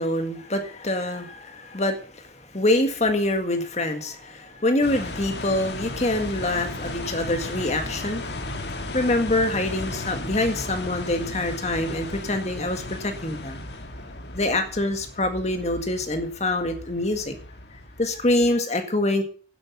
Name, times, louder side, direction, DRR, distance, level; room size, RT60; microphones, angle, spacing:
voice 1, 0.0-8.3 8.9-13.6 14.3-17.4 18.0-19.2, left 1 dB, 35° left, 6 dB, 1.8 m, -25 dB
sound 1, 4.8-18.6, left 2 dB, 65° left, 1.7 m, -35 dB
10.5 x 8.0 x 7.3 m, 0.43 s
head